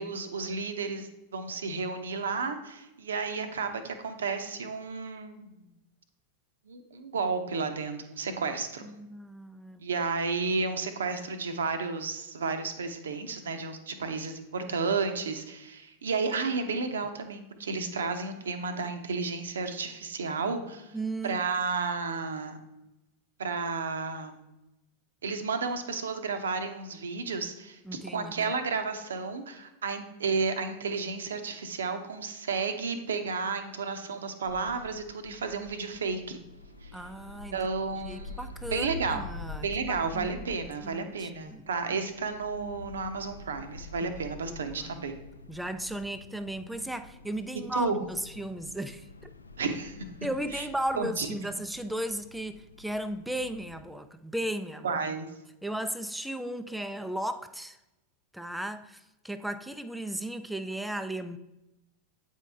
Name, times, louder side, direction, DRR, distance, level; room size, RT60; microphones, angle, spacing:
voice 1, 0.0-5.6 6.7-8.9 9.8-20.9 21.2-22.6 23.4-24.4 25.2-27.8 28.1-36.4 36.8-36.9 37.5-38.4 38.7-39.3 39.6-45.2 47.8-48.0 49.6-50.0 50.5-50.6 51.0-51.3 54.8-55.3, right 4 dB, 65° right, 0.7 m, -32 dB
voice 2, 8.8-9.8 20.9-21.4 27.9-28.5 36.9-37.6 38.1-42.1 44.5-45.0 45.5-49.3 50.2-55.0 55.6-57.8 58.3-61.4, right 1 dB, ahead, 0.3 m, -36 dB
sound 1, 34.4-53.8, left 2 dB, 80° left, 0.4 m, -46 dB
8.3 x 4.6 x 3.4 m
figure-of-eight pair, 90°, 0 cm